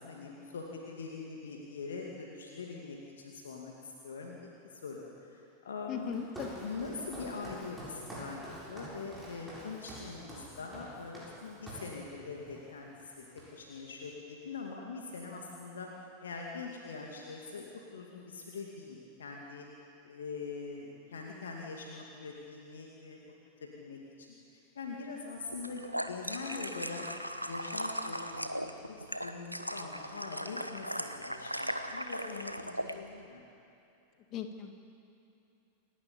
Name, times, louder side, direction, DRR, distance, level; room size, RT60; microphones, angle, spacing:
voice 1, 0.0-4.4 4.7-6.1 6.6-13.3 13.5-15.9 16.2-17.6 17.9-19.7 20.0-23.2 23.6-24.3 24.8-27.0 27.5-33.4, left 4 dB, 65° left, -1 dB, 2.5 m, -43 dB
voice 2, 5.9-6.9 34.3-34.8, left 7 dB, 35° left, 6 dB, 1.9 m, -39 dB
Walk footsteps, 6.0-12.0 12.5-12.7 13.0-13.8, right 1 dB, 5° right, 7.3 m, -47 dB
sound 1, 25.5-33.0, equal, 90° right, 1.0 m, -38 dB
28.0 x 12.0 x 8.7 m, 2.7 s
figure-of-eight pair, 90°, 0 cm